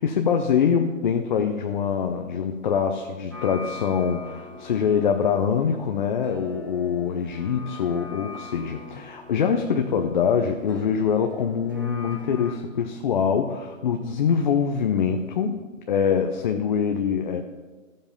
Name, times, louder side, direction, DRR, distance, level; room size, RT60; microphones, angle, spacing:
voice 1, 0.0-15.6 15.9-17.4, left 7 dB, 35° left, 4 dB, 0.7 m, -24 dB
sound 1, 3.3-12.5, left 3 dB, 15° right, 0.4 m, -42 dB
14.0 x 7.4 x 5.2 m, 1.3 s
hypercardioid pair, 155°, 41 cm